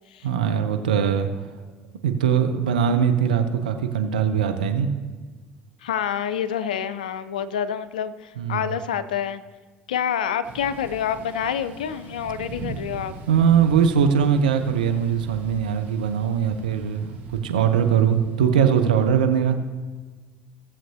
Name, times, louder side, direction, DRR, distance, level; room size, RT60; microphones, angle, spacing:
voice 1, 0.2-1.3 2.0-4.9 8.4-8.7 13.3-19.6, right 7 dB, 85° right, 6 dB, 0.8 m, -21 dB
voice 2, 5.8-9.4 9.9-13.2, left 8 dB, 80° left, 13 dB, 0.5 m, -27 dB
Thunder / Rain, 10.4-19.2, right 4 dB, 50° right, 2.4 m, -40 dB
17.0 x 7.4 x 2.8 m, 1.3 s
hypercardioid pair, 60°, 4 cm